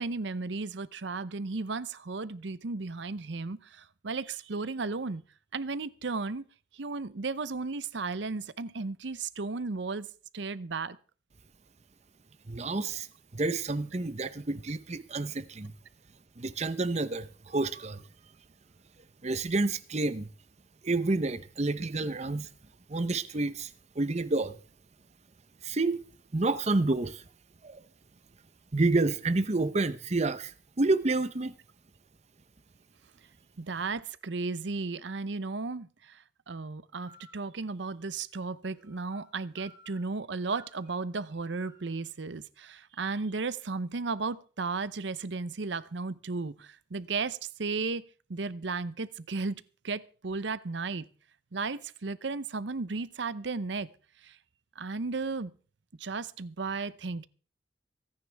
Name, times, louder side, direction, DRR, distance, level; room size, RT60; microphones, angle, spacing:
voice 1, 0.0-5.2 5.5-6.5 6.7-10.1 10.3-11.0 33.6-48.0 48.3-51.1 51.5-53.9 54.2-54.4 54.8-55.5 56.0-57.3, right 4 dB, 70° right, 0.7 m, -34 dB
voice 2, 12.5-13.1 13.3-15.7 16.4-18.0 19.2-20.3 20.8-22.5 22.9-23.7 24.0-24.6 25.6-26.0 26.3-27.2 27.6-27.8 28.7-31.5, right 2 dB, 35° right, 0.8 m, -29 dB
sound 1, 37.1-37.4 38.7-39.3 39.6-40.3 40.5-42.0, right 3 dB, 15° right, 3.4 m, -55 dB
25.5 x 9.7 x 3.4 m
head